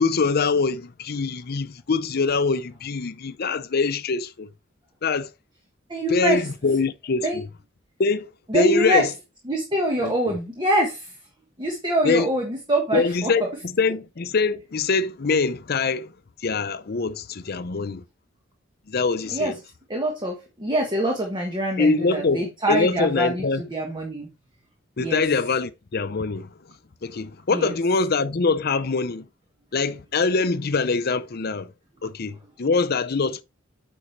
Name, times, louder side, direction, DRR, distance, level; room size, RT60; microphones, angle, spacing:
voice 1, 0.0-4.5 5.0-5.3 6.1-7.5 8.0-9.1 10.0-10.4 12.0-12.3 12.9-16.1 16.4-18.0 18.9-19.6 21.8-23.6 25.0-26.5 27.0-29.3 29.7-31.7 32.0-33.4, left 4 dB, 55° left, 0.6 m, -24 dB
voice 2, 5.9-6.4 7.2-7.4 8.5-9.1 9.5-11.1 11.6-13.3 19.3-19.5 19.9-24.3 25.0-25.2 27.5-27.7, right 1 dB, 25° right, 1.3 m, -24 dB
8.7 x 5.5 x 3.2 m
head